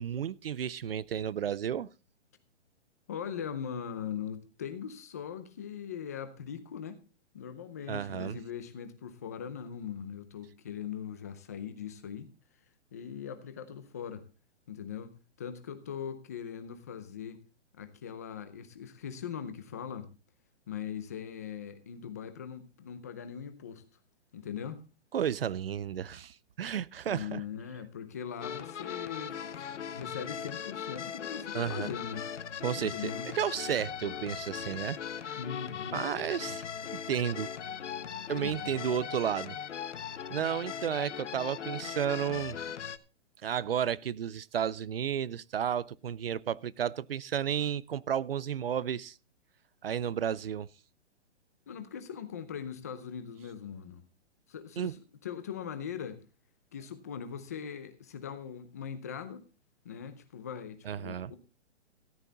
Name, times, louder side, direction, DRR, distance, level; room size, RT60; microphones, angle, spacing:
voice 1, 0.0-1.9 7.9-8.4 25.1-27.4 31.5-31.9 32.6-35.0 35.3-35.4 35.9-36.6 36.9-37.5 38.3-39.6 40.3-42.7 43.4-49.2 49.8-50.7 54.8-54.9 60.9-61.3, right 9 dB, 55° right, 0.5 m, -32 dB
voice 2, 3.1-7.0 7.3-12.3 12.9-14.2 14.7-15.1 15.4-17.4 17.7-20.1 20.7-23.8 24.3-24.8 27.1-32.3 32.8-33.3 35.3-36.1 38.4-38.8 51.7-54.0 54.5-56.2 56.7-59.4 59.8-61.4, left 8 dB, 15° left, 0.6 m, -40 dB
sound 1, 28.4-43.0, left 8 dB, 75° left, 1.1 m, -39 dB
14.0 x 10.5 x 4.0 m
hypercardioid pair, 170°, 36 cm